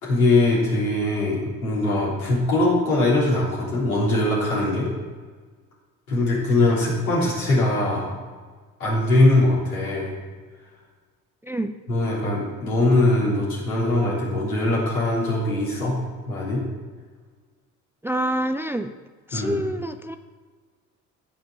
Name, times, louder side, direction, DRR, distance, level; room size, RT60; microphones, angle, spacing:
voice 1, 0.0-4.9 6.1-8.1 8.8-10.1 11.9-16.0 16.3-16.6 19.3-19.7, left 2 dB, 80° left, -6 dB, 3.4 m, -21 dB
voice 2, 11.4-11.7 18.0-18.9 19.3-20.2, right 1 dB, 5° right, 8 dB, 0.4 m, -27 dB
14.0 x 5.3 x 6.5 m, 1.5 s
figure-of-eight pair, 50°, 43 cm